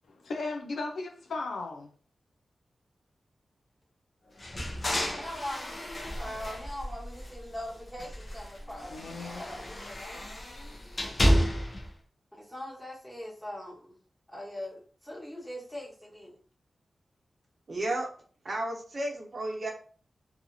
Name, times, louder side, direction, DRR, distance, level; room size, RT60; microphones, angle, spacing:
voice 1, 0.1-1.9 8.6-10.8, left 3 dB, 85° left, 0.5 m, -38 dB
sound 1, 4.4-7.6 7.9-11.9, equal, 45° left, 0.8 m, -31 dB
voice 2, 5.1-10.3 12.3-14.0 14.3-16.4, left 1 dB, ahead, 1.3 m, -41 dB
voice 3, 17.7-18.1 18.4-19.7, right 1 dB, 55° right, 0.8 m, -32 dB
2.8 x 2.4 x 2.6 m
cardioid pair, 60°, 0 cm